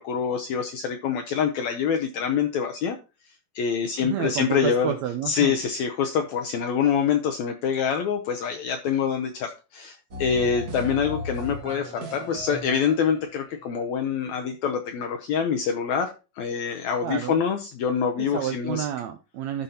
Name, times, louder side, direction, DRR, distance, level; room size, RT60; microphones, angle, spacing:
voice 1, 0.1-2.9 3.6-4.9 5.2-9.3 10.2-16.1 16.4-18.8, left 7 dB, 75° left, 4 dB, 1.7 m, -25 dB
voice 2, 4.0-5.5 17.0-17.4 18.2-19.6, right 10 dB, 85° right, 7 dB, 1.6 m, -30 dB
sound 1, 10.1-13.4, left 1 dB, 60° right, 0.9 m, -35 dB
13.0 x 5.3 x 2.8 m, 0.31 s
omnidirectional pair, 3.9 m